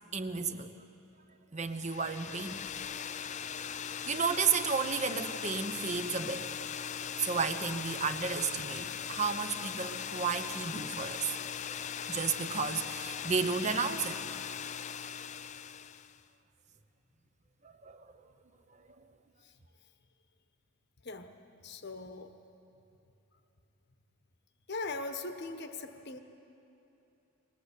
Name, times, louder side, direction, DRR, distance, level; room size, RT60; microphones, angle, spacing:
voice 1, 0.1-0.7 1.5-2.6 3.6-3.7 4.0-6.4 7.2-11.3 12.1-14.2 17.8-18.1, right 5 dB, 35° right, 9 dB, 0.9 m, -32 dB
sound 1, 1.7-16.2, left 8 dB, 35° left, 0.4 m, -39 dB
voice 2, 21.6-22.3 24.7-26.2, left 3 dB, 55° left, 7 dB, 1.2 m, -40 dB
21.0 x 20.5 x 8.3 m, 2.9 s
head